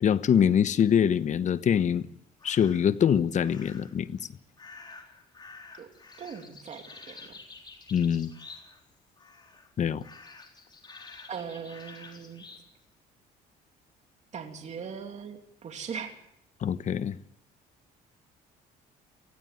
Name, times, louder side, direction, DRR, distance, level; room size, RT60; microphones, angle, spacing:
voice 1, 0.0-2.1 2.4-4.2 7.9-8.3 9.8-10.0 16.6-17.2, left 8 dB, 45° left, 1.1 m, -24 dB
sound 1, 2.4-3.0 3.4-4.0 4.6-8.9 9.2-9.7 10.0-12.7, left 4 dB, 25° left, 4.0 m, -49 dB
voice 2, 6.2-7.2 11.3-12.4 14.3-16.2, right 6 dB, 45° right, 2.8 m, -40 dB
19.0 x 15.5 x 9.1 m
cardioid pair, 110°, 17 cm